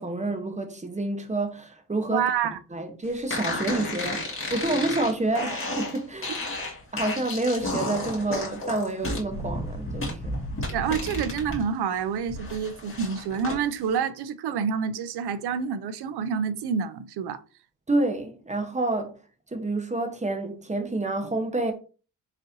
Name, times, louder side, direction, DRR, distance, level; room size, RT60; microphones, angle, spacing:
voice 1, 0.0-2.2 2.7-6.3 6.9-10.4 17.9-19.2 19.5-21.7, right 2 dB, 15° right, 1.0 m, -28 dB
voice 2, 2.1-2.6 10.7-17.4, right 7 dB, 70° right, 0.6 m, -28 dB
sound 1, 3.3-11.6 12.0-13.6, left 1 dB, 30° left, 1.9 m, -32 dB
4.2 x 4.0 x 2.7 m
cardioid pair, 80°, 40 cm